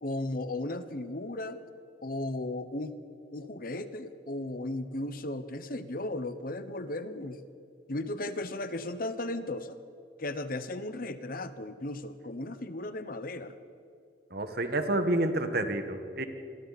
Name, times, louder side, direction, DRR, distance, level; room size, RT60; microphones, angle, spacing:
voice 1, 0.0-1.6 2.0-3.0 3.3-7.4 7.9-9.8 10.2-13.6, left 2 dB, 45° left, 11 dB, 1.0 m, -35 dB
voice 2, 14.3-16.2, right 1 dB, 50° right, 7 dB, 1.6 m, -29 dB
28.0 x 22.5 x 4.2 m, 2.5 s
head